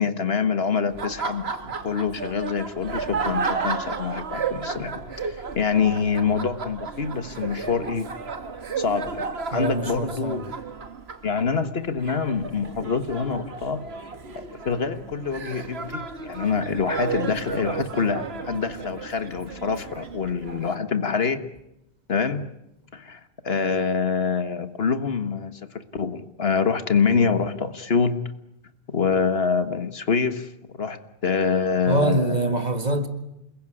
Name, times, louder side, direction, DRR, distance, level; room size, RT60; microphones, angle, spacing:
voice 1, 0.0-1.5 1.8-8.1 8.8-10.7 11.2-14.1 14.3-21.5 22.1-22.5 22.9-28.2 28.9-32.7, left 5 dB, 70° left, 1.7 m, -26 dB
Laughter, 0.9-20.8, right 5 dB, 80° right, 1.8 m, -33 dB
voice 2, 9.5-10.4 31.9-33.1, right 2 dB, 40° right, 2.1 m, -24 dB
28.0 x 21.5 x 10.0 m
omnidirectional pair, 1.1 m